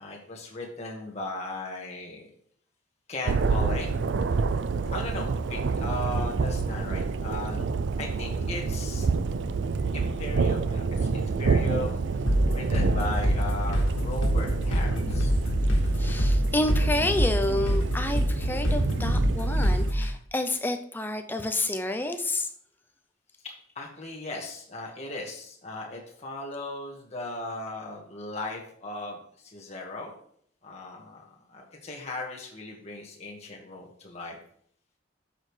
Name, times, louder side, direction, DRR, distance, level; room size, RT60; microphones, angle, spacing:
voice 1, 0.0-2.3 3.1-3.9 4.9-7.6 8.0-9.1 9.9-12.2 12.5-15.3 23.4-30.1 30.6-31.2 31.5-34.4, left 2 dB, 35° left, -1 dB, 1.7 m, -37 dB
Thunder, 3.2-19.9, right 4 dB, 65° right, 0.4 m, -28 dB
sound 1, 12.3-20.1, equal, 80° left, 1.7 m, -25 dB
voice 2, 16.0-22.5, left 2 dB, 10° left, 7 dB, 0.5 m, -29 dB
8.8 x 6.5 x 3.3 m, 0.65 s
head